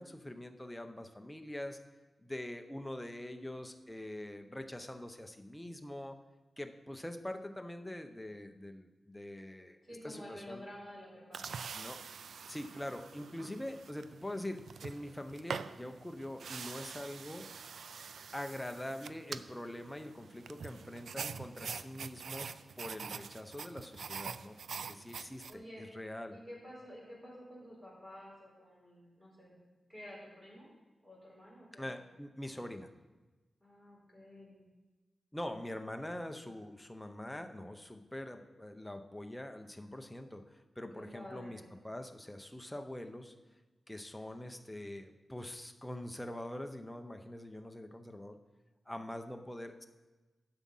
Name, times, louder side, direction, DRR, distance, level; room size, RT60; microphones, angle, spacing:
voice 1, 0.0-1.8 2.2-6.2 6.6-9.8 10.0-10.6 11.7-12.0 12.5-17.5 18.3-26.4 31.7-32.9 35.3-43.3 43.9-48.4 48.9-49.8, left 1 dB, 5° left, 6 dB, 0.7 m, -44 dB
voice 2, 9.8-11.6 25.5-25.9 26.3-29.5 29.9-30.7 31.0-31.9 33.6-34.6 40.9-41.6, left 1 dB, 20° right, -4 dB, 4.3 m, -50 dB
sound 1, 11.3-25.5, right 6 dB, 85° right, 0.4 m, -45 dB
11.5 x 7.3 x 5.5 m, 1.2 s
wide cardioid pair, 150°, 0 cm